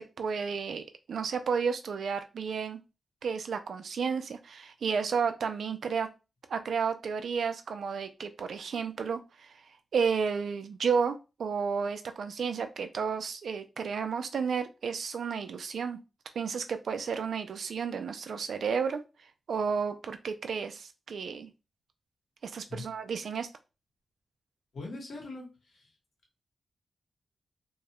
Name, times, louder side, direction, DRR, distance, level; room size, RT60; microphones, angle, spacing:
voice 1, 0.0-2.8 3.2-6.1 6.5-9.5 9.9-16.0 16.4-19.0 19.5-21.5 22.4-23.5, right 6 dB, 80° right, 9 dB, 0.3 m, -32 dB
voice 2, 24.7-25.9, left 2 dB, 80° left, 0 dB, 0.9 m, -42 dB
2.2 x 2.0 x 2.8 m, 0.28 s
cardioid pair, 65°, 0 cm